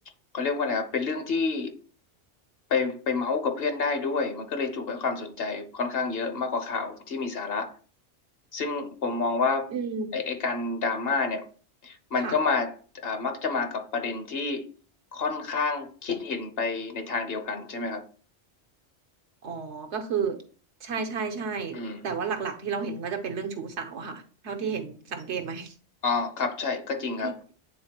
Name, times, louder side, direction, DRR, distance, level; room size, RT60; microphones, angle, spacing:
voice 1, 0.3-1.8 2.7-7.7 8.5-9.7 10.1-11.5 11.8-14.7 15.1-18.0 21.7-22.0 26.0-27.4, left 4 dB, 60° left, 1.1 m, -29 dB
voice 2, 9.7-10.1 12.2-12.4 19.4-20.4 20.8-25.7 27.2-27.4, right 5 dB, 75° right, 1.2 m, -32 dB
8.8 x 3.9 x 2.9 m
omnidirectional pair, 1.2 m